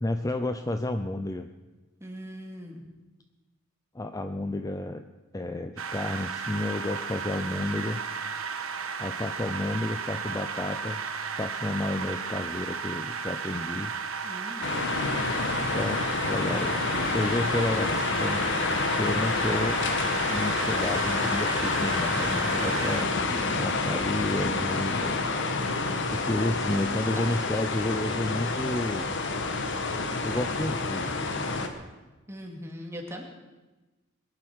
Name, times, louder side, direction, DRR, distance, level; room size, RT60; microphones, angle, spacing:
voice 1, 0.0-1.5 3.9-5.0 5.3-8.0 9.0-11.0 11.4-13.9 15.7-18.5 18.9-19.8 20.3-23.1 23.5-25.3 26.1-29.1 30.2-31.3, left 1 dB, 15° left, 8 dB, 0.5 m, -31 dB
voice 2, 2.0-2.8 14.2-14.7 23.3-23.6 27.2-27.3 27.7-27.8 32.3-33.2, equal, 15° right, 1 dB, 2.5 m, -40 dB
sound 1, 5.8-23.0, right 5 dB, 80° right, 1.4 m, -34 dB
sound 2, 14.6-31.7, left 3 dB, 60° left, 1.5 m, -28 dB
21.5 x 10.5 x 6.3 m, 1.2 s
head